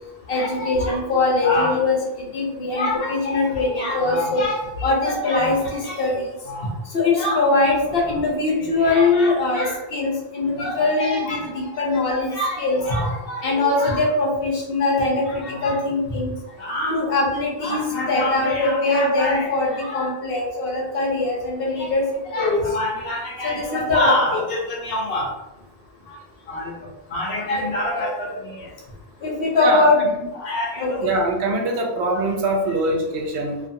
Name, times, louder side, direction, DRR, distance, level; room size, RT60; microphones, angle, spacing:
voice 1, 0.3-6.7 6.9-16.3 16.6-25.3 26.5-26.7 27.1-28.6 29.2-30.0 30.3-31.1, left 2 dB, 65° left, -2 dB, 0.9 m, -22 dB
voice 2, 31.0-33.6, right 1 dB, 80° right, 1 dB, 0.9 m, -23 dB
2.5 x 2.4 x 2.6 m, 0.99 s
omnidirectional pair, 1.1 m